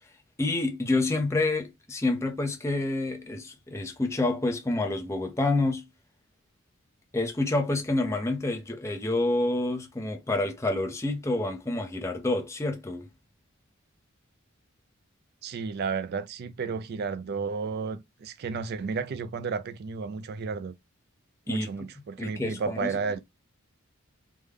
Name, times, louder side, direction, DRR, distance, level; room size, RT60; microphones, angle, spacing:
voice 1, 0.4-5.9 7.1-13.1 21.5-21.7 22.2-22.9, left 2 dB, 15° left, 0.5 m, -28 dB
voice 2, 15.4-20.7 21.5-23.2, right 5 dB, 50° right, 0.3 m, -32 dB
3.5 x 2.1 x 3.3 m
head